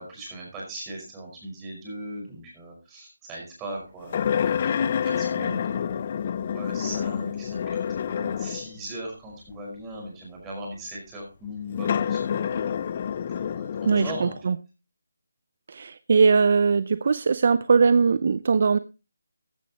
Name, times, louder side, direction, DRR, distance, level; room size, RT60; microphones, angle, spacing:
voice 1, 0.0-6.0 6.5-12.7 13.3-14.4, right 1 dB, 10° right, -2 dB, 5.2 m, -39 dB
sound 1, 4.1-8.8 9.5-9.6 11.7-14.3, left 8 dB, 30° left, 0.6 m, -28 dB
voice 2, 13.9-14.5 15.7-18.8, right 5 dB, 45° right, 16 dB, 0.5 m, -20 dB
15.5 x 11.0 x 3.0 m, 0.30 s
figure-of-eight pair, 165°, 0 cm